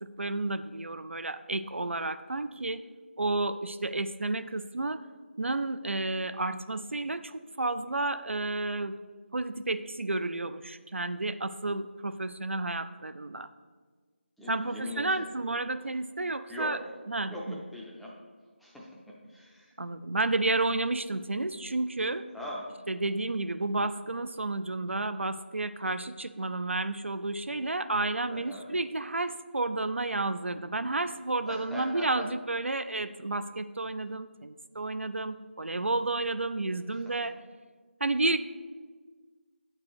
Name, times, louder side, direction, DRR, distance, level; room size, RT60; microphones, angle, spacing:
voice 1, 0.0-2.8 3.2-5.0 5.4-9.0 9.3-13.5 14.5-16.8 17.1-17.6 19.8-22.3 22.9-37.3 38.0-38.4, right 2 dB, 85° right, 12 dB, 0.4 m, -31 dB
voice 2, 14.4-15.2 16.5-16.8 17.3-18.1 18.6-19.8 22.3-22.7 28.3-28.7 31.5-32.2 36.9-37.1, left 1 dB, ahead, -5 dB, 0.4 m, -40 dB
8.6 x 4.4 x 4.6 m, 1.5 s
figure-of-eight pair, 160°, 7 cm